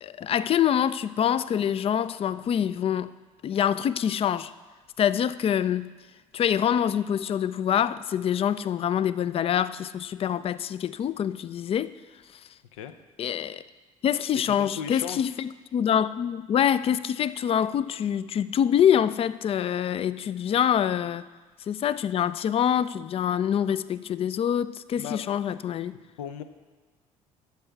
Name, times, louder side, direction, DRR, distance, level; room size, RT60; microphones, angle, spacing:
voice 1, 0.0-3.1 3.4-4.5 5.0-5.9 6.3-11.9 13.2-13.6 14.0-21.3 21.7-25.9, left 9 dB, 35° left, 0.4 m, -25 dB
voice 2, 14.5-15.3 25.0-25.2 26.2-26.4, left 8 dB, 75° left, 0.6 m, -36 dB
11.5 x 7.0 x 4.6 m
hypercardioid pair, 55°, 17 cm